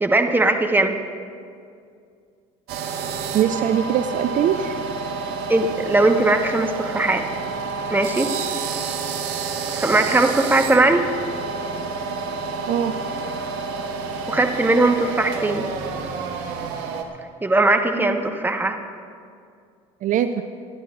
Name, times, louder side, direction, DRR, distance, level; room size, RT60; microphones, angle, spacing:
voice 1, 0.0-0.9 5.5-7.2 7.9-8.3 9.8-11.1 14.3-15.7 17.4-18.8, right 2 dB, 10° right, 5 dB, 1.3 m, -19 dB
sound 1, 2.7-17.0, right 4 dB, 70° right, 1.4 m, -29 dB
voice 2, 3.3-4.8 12.7-12.9 17.9-18.2 20.0-20.3, right 10 dB, 50° right, 9 dB, 0.6 m, -21 dB
25.5 x 11.5 x 2.5 m, 2.3 s
hypercardioid pair, 70°, 17 cm